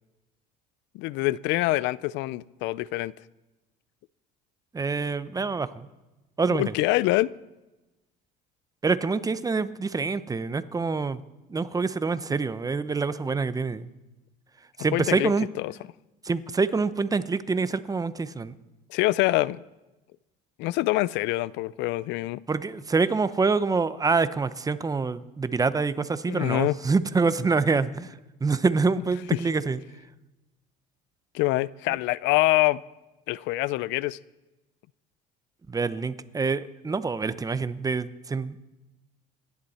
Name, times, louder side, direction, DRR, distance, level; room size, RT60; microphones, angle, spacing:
voice 1, 0.9-3.1 6.5-7.3 14.9-15.3 15.6-15.7 18.9-19.6 20.6-22.4 26.3-26.8 31.3-32.8 33.3-34.2, left 18 dB, 70° left, 21 dB, 0.5 m, -25 dB
voice 2, 4.7-5.9 6.4-6.7 8.8-11.2 11.5-13.9 14.8-15.5 16.2-18.6 22.5-29.8 35.7-38.6, right 4 dB, 20° right, 14 dB, 0.8 m, -26 dB
26.5 x 11.0 x 4.3 m, 1.0 s
supercardioid pair, 95°, 19 cm